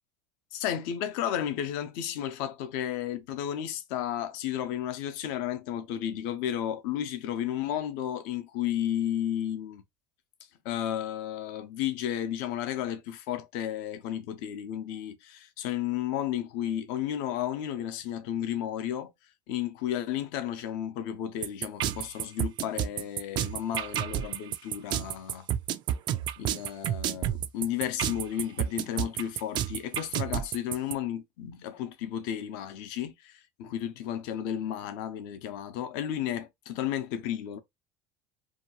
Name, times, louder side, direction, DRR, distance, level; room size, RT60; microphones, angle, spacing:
voice 1, 0.5-9.8 10.6-19.1 19.5-25.5 26.4-37.6, left 10 dB, 70° left, 0.7 m, -33 dB
sound 1, 21.4-30.9, right 11 dB, 45° right, 0.4 m, -30 dB
2.8 x 2.3 x 2.8 m
supercardioid pair, 115°, 10 cm